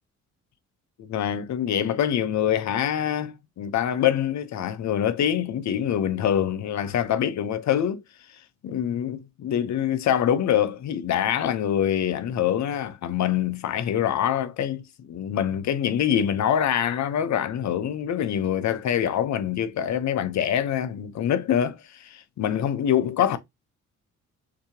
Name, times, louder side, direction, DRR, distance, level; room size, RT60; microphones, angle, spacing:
voice 1, 1.0-8.0 8.6-23.4, left 9 dB, 65° left, 1.0 m, -25 dB
6.4 x 2.9 x 2.9 m
cardioid pair, 90°, 30 cm